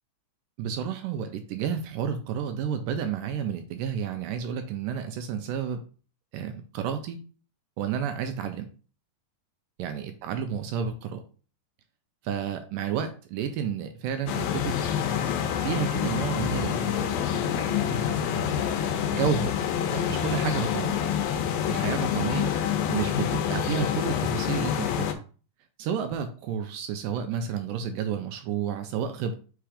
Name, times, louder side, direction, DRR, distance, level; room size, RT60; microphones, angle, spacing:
voice 1, 0.6-5.8 6.3-7.2 7.8-8.7 9.8-11.2 12.2-14.8 15.6-17.2 17.9-18.4 19.1-19.5 19.9-21.0 21.7-22.5 22.9-25.1 25.8-29.3, right 7 dB, 80° right, 7 dB, 2.1 m, -31 dB
sound 1, 14.3-25.1, left 9 dB, 85° left, 2.5 m, -27 dB
5.8 x 3.5 x 4.9 m, 0.37 s
omnidirectional pair, 4.2 m